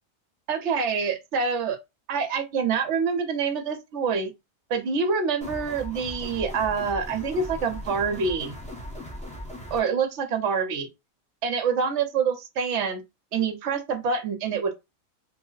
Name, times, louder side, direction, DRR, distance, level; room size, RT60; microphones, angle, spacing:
voice 1, 0.5-1.8 2.1-4.3 4.7-8.5 9.7-10.9 11.4-13.0 13.3-14.9, right 5 dB, 65° right, 0.9 m, -26 dB
sound 1, 5.4-9.8, equal, 5° left, 0.6 m, -38 dB
3.1 x 2.0 x 3.8 m
omnidirectional pair, 1.4 m